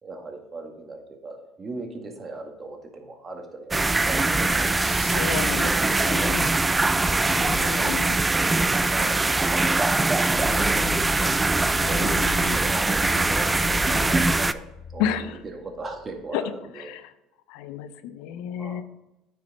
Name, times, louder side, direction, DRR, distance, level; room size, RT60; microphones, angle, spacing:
voice 1, 0.0-4.9 5.2-6.3 6.7-7.0 7.6-11.3 11.9-12.2 12.5-14.6 14.9-17.1 18.6-18.8, right 3 dB, 30° right, 3 dB, 1.9 m, -39 dB
sound 1, 3.7-14.5, right 2 dB, 15° right, 0.4 m, -22 dB
voice 2, 4.8-6.5 7.3-8.2 11.8-12.6 15.0-15.4 16.3-16.4 16.8-17.0 17.5-18.8, left 9 dB, 70° left, 12 dB, 0.6 m, -32 dB
sound 2, 10.3-16.2, left 6 dB, 40° left, 1.3 m, -37 dB
9.2 x 5.9 x 4.2 m, 0.96 s
hypercardioid pair, 75°, 0 cm